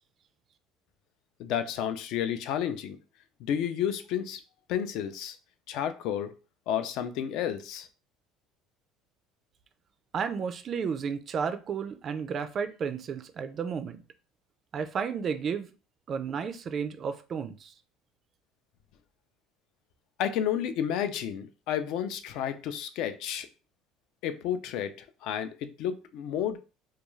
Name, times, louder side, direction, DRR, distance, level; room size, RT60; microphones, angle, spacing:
voice 1, 1.4-3.0 3.4-4.4 4.7-5.4 5.7-6.3 6.7-7.9 20.2-23.5 24.2-25.0 25.2-26.6, left 9 dB, 65° left, 0.4 m, -31 dB
voice 2, 10.1-14.0 14.7-15.7 16.1-17.7, right 6 dB, 35° right, 0.3 m, -32 dB
2.3 x 2.3 x 3.0 m
cardioid pair, 130°, 0 cm